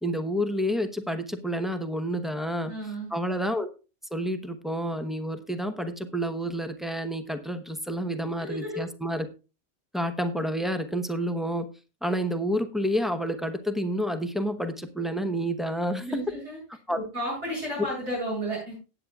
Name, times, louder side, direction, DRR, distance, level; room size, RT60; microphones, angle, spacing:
voice 1, 0.0-2.7 3.1-3.7 4.1-9.3 9.9-11.7 12.0-16.1 16.9-17.0, equal, ahead, 8 dB, 0.7 m, -29 dB
voice 2, 2.6-3.1 8.4-8.8 16.0-16.6 16.9-18.7, right 1 dB, 85° right, -5 dB, 8.1 m, -32 dB
17.5 x 8.4 x 2.4 m, 0.32 s
omnidirectional pair, 1.2 m